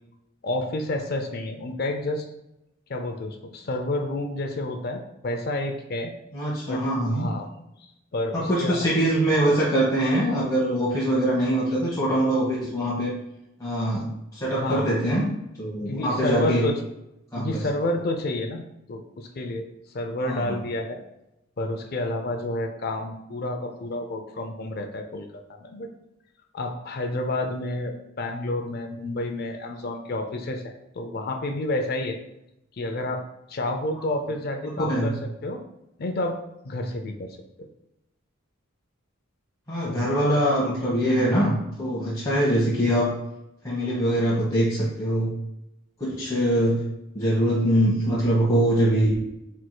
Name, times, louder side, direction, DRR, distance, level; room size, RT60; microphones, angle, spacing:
voice 1, 0.4-2.3 2.9-6.1 6.7-6.8 7.1-7.5 7.8-8.8 14.5-14.9 15.9-16.8 17.4-18.6 18.9-21.0 21.6-25.3 25.6-25.9 26.5-32.2 32.8-33.2 33.5-35.2 35.4-35.6 36.0-37.7 39.8-40.2, left 1 dB, 45° left, 4 dB, 0.4 m, -30 dB
voice 2, 6.3-7.3 8.3-13.1 13.6-14.1 14.3-15.3 15.6-16.7 17.3-17.6 20.2-20.6 34.8-35.1 39.7-43.1 43.6-45.3 46.0-46.9 47.1-49.2, right 1 dB, 15° left, -8 dB, 0.9 m, -23 dB
4.5 x 4.5 x 2.2 m, 0.88 s
head